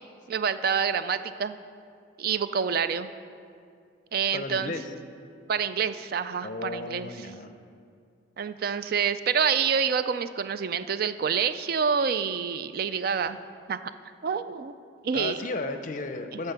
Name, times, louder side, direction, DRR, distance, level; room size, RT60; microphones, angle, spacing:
voice 1, 0.3-1.6 2.2-3.1 4.1-4.7 5.5-7.1 8.4-13.4 13.7-13.8 14.2-14.7 15.0-15.4, right 6 dB, 50° right, 12 dB, 0.3 m, -27 dB
voice 2, 4.3-4.8 6.4-7.5 15.1-16.5, left 2 dB, 40° left, 8 dB, 0.6 m, -34 dB
12.0 x 4.5 x 6.8 m, 2.3 s
head